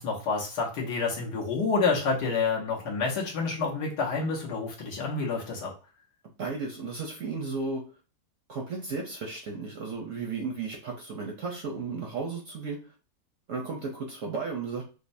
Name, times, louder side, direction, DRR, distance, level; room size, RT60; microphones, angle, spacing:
voice 1, 0.0-5.7, left 4 dB, 70° left, -1 dB, 1.6 m, -28 dB
voice 2, 6.4-7.8 8.5-12.9 13.5-14.8, right 4 dB, 60° right, 0 dB, 0.9 m, -34 dB
5.1 x 2.1 x 2.6 m, 0.34 s
omnidirectional pair, 1.9 m